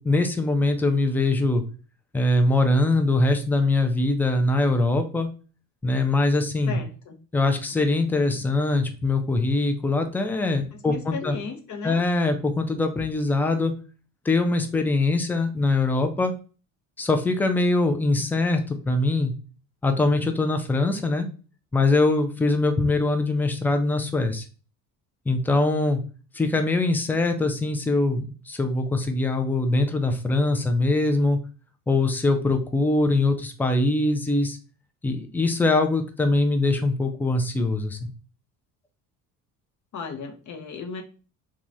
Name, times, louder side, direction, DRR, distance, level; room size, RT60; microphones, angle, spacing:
voice 1, 0.0-1.6 2.1-5.3 5.8-6.8 7.3-11.4 11.8-13.7 14.2-16.3 17.0-19.3 19.8-21.3 21.7-24.4 25.3-26.0 26.3-31.4 31.9-34.6 35.0-38.1, left 2 dB, 5° left, 6 dB, 0.4 m, -22 dB
voice 2, 6.7-7.2 10.7-12.0 39.9-41.0, left 5 dB, 40° left, 5 dB, 0.8 m, -35 dB
2.9 x 2.3 x 2.5 m, 0.36 s
supercardioid pair, 70°, 43 cm